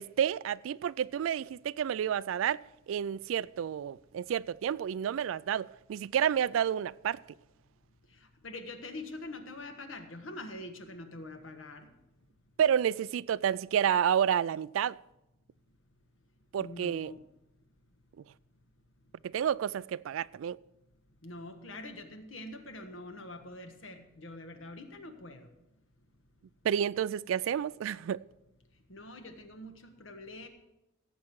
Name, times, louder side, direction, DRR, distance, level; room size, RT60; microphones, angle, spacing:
voice 1, 0.0-7.2 12.6-15.0 16.5-17.1 19.2-20.6 26.6-28.2, right 9 dB, 75° right, 0.3 m, -30 dB
voice 2, 8.4-11.9 16.6-17.2 21.2-25.5 28.9-30.5, left 2 dB, 75° left, 1.4 m, -44 dB
17.0 x 7.5 x 4.6 m
head